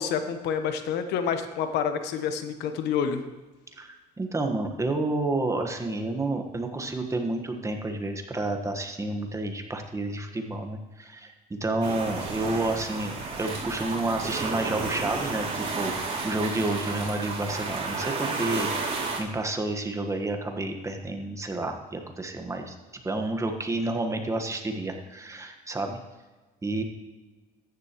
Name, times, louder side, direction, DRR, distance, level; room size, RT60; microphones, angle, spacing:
voice 1, 0.0-3.2, left 7 dB, 85° left, 8 dB, 1.0 m, -28 dB
voice 2, 4.2-22.7 23.0-26.0 26.6-26.8, right 2 dB, 15° right, 4 dB, 1.3 m, -30 dB
sound 1, 11.8-19.2, right 4 dB, 40° right, 3.5 m, -32 dB
14.0 x 10.5 x 3.0 m, 1.2 s
cardioid pair, 110°, 17 cm